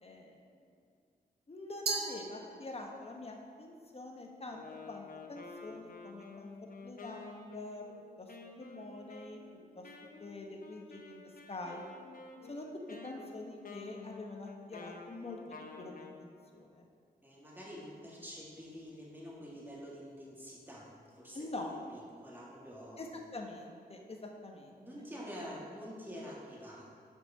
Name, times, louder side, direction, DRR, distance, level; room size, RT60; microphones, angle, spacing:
voice 1, 0.0-0.4 1.5-6.5 6.8-7.9 8.2-8.3 8.6-9.4 9.7-9.8 10.2-11.8 12.5-12.7 13.0-16.8 21.3-21.7 23.0-24.8, left 2 dB, 35° left, 1 dB, 1.1 m, -45 dB
Glass, 1.9-3.1, right 5 dB, 75° right, 0.7 m, -38 dB
Wind instrument woodwind instrument, 4.5-16.2, left 4 dB, 55° left, 0.8 m, -51 dB
voice 2, 17.2-21.5 21.9-23.1 24.8-26.9, equal, 10° right, -5 dB, 2.1 m, -47 dB
6.1 x 5.5 x 5.5 m, 2.2 s
cardioid pair, 65°, 17 cm